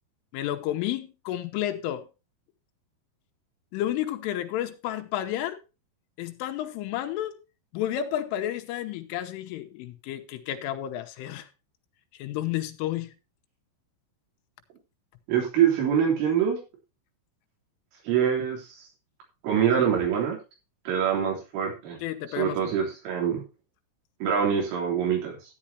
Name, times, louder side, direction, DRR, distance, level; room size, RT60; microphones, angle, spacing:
voice 1, 0.3-2.1 3.7-5.6 6.2-7.4 7.7-11.5 12.1-13.1 22.0-22.7, left 12 dB, 80° left, 3.5 m, -31 dB
voice 2, 15.3-16.6 18.1-18.6 19.4-20.4 20.9-22.0 22.4-23.4 24.2-25.4, right 8 dB, 75° right, 5.8 m, -24 dB
14.0 x 9.7 x 2.8 m
omnidirectional pair, 5.8 m